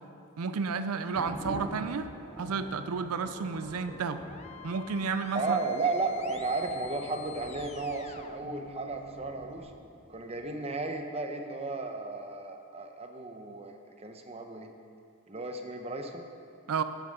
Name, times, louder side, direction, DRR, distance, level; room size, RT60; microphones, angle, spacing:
voice 1, 0.4-2.1 2.4-4.2 4.6-5.6 16.7-16.8, right 5 dB, 80° right, 10 dB, 0.5 m, -31 dB
sound 1, 1.0-10.4, equal, 5° right, 3.1 m, -46 dB
sound 2, 2.5-9.6, left 5 dB, 30° left, 0.4 m, -50 dB
voice 2, 5.3-9.7 10.1-14.7 15.3-16.3, right 3 dB, 25° right, 5 dB, 0.8 m, -34 dB
11.5 x 9.3 x 5.3 m, 2.4 s
head